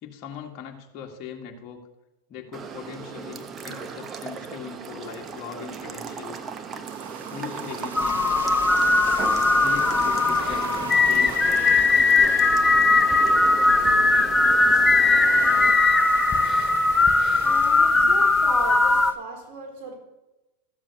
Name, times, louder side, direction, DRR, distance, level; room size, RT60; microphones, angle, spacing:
voice 1, 0.0-1.8 2.3-6.5 7.3-8.2 9.6-11.6, left 7 dB, 40° left, 2.0 m, -39 dB
sound 1, 2.5-15.7, right 6 dB, 30° right, 1.1 m, -36 dB
sound 2, 6.8-19.2, right 6 dB, 85° right, 1.1 m, -39 dB
sound 3, 7.9-19.1, left 3 dB, 10° left, 0.8 m, -19 dB
voice 2, 17.4-20.0, right 3 dB, 50° right, 4.3 m, -37 dB
14.0 x 7.4 x 6.6 m
hypercardioid pair, 105°, 0 cm